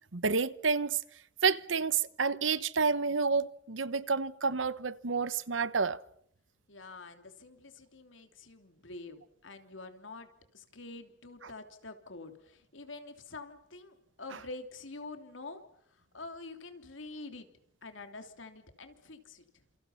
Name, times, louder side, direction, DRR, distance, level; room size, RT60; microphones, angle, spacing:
voice 1, 0.1-1.0 1.4-6.0, right 5 dB, 85° right, 1.0 m, -29 dB
voice 2, 6.7-15.6 15.9-17.5 17.8-19.4, left 3 dB, 90° left, 3.1 m, -47 dB
30.0 x 27.5 x 5.7 m
head